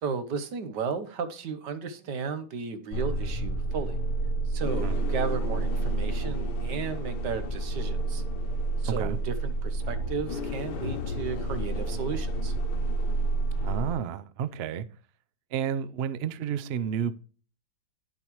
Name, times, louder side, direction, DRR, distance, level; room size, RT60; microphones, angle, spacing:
voice 1, 0.0-4.0 4.5-8.2 8.8-12.5, right 5 dB, 85° right, 1.6 m, -34 dB
sound 1, 2.9-13.9, right 2 dB, 80° left, 1.6 m, -29 dB
voice 2, 8.8-9.2 13.6-14.9 15.5-17.1, right 8 dB, 70° right, 0.6 m, -31 dB
10.0 x 7.0 x 3.0 m
omnidirectional pair, 1.8 m